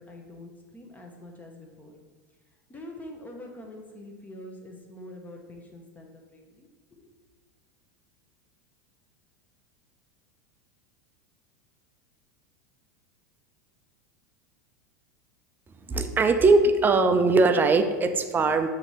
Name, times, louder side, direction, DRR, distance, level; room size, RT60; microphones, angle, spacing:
voice 1, 0.0-1.9 2.5-7.1, left 1 dB, 15° left, 1 dB, 0.8 m, -45 dB
voice 2, 15.9-18.7, right 3 dB, 20° right, 8 dB, 0.4 m, -20 dB
6.4 x 2.7 x 3.0 m, 1.4 s
hypercardioid pair, 95°, 10 cm